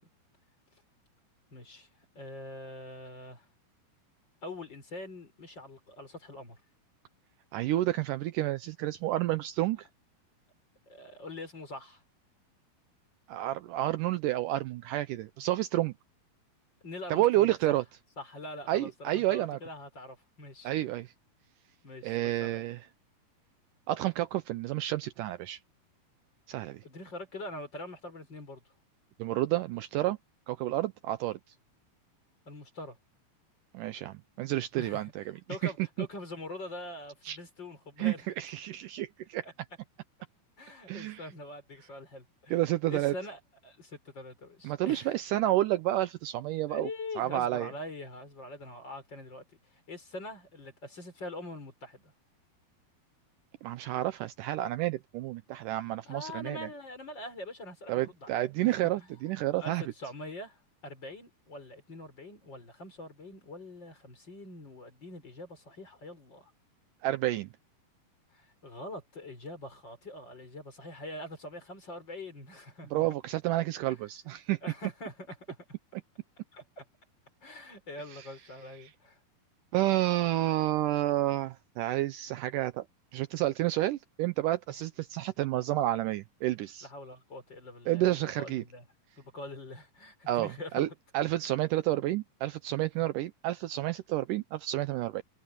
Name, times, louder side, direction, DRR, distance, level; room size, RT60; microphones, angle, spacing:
voice 1, 1.5-1.9 2.1-3.5 4.4-6.6 10.9-12.0 16.8-17.5 18.2-20.7 21.8-22.6 26.8-28.6 32.5-33.0 34.7-35.1 35.5-38.3 39.4-39.5 40.6-42.6 42.9-45.1 46.7-49.4 49.7-52.1 56.1-59.1 59.6-66.5 68.3-73.2 73.9-74.0 74.6-75.6 76.5-76.9 77.4-79.2 86.8-88.8 89.2-90.9 93.0-93.1, left 1 dB, 30° left, 5.5 m, -44 dB
voice 2, 7.5-9.9 13.3-15.9 17.1-17.8 18.7-19.6 20.6-21.1 22.0-22.8 23.9-25.6 26.5-26.8 29.2-30.2 30.5-31.4 33.7-35.7 37.3-37.4 38.0-39.5 40.9-41.2 42.5-43.1 44.6-46.9 47.2-47.7 53.6-56.7 57.9-59.8 67.0-67.5 72.9-74.6 78.8-78.9 79.7-82.9 83.1-86.9 87.9-88.6 90.3-90.9 91.1-95.2, right 15 dB, 85° right, 1.9 m, -30 dB
omnidirectional pair, 4.4 m